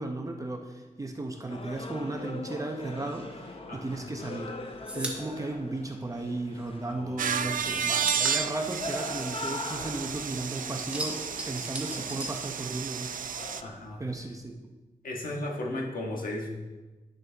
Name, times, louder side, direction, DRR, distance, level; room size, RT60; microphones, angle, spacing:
voice 1, 0.0-4.5 4.9-11.2 11.5-13.4 14.0-14.7, right 2 dB, 25° right, 3 dB, 0.7 m, -35 dB
sound 1, 1.5-13.7, left 2 dB, 40° left, 0.8 m, -42 dB
voice 2, 3.7-4.1 6.9-8.0 13.6-14.0 15.0-16.5, left 1 dB, 90° left, 0 dB, 1.5 m, -36 dB
sound 2, 3.8-6.6 6.9-10.2 10.5-13.1 13.4-14.5, equal, 10° right, 1.2 m, -40 dB
sound 3, 7.2-13.6, right 8 dB, 75° right, 0.4 m, -32 dB
10.5 x 6.7 x 3.4 m, 1.2 s
wide cardioid pair, 130°, 14 cm